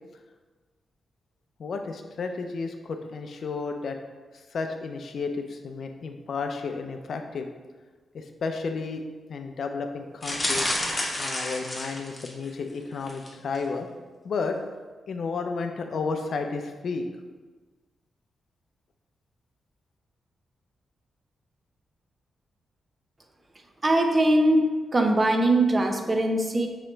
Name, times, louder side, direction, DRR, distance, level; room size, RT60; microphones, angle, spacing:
voice 1, 1.6-4.0 4.3-7.5 8.1-9.0 9.3-10.7 11.2-13.9 14.2-14.6 15.1-17.0, left 4 dB, 50° left, 5 dB, 0.4 m, -32 dB
sound 1, 10.2-12.5 13.0-13.3 13.6-13.7, left 1 dB, 15° left, 0.7 m, -29 dB
voice 2, 23.8-26.7, right 1 dB, 20° right, 5 dB, 0.4 m, -21 dB
5.5 x 2.9 x 3.2 m, 1.3 s
wide cardioid pair, 180°, 0 cm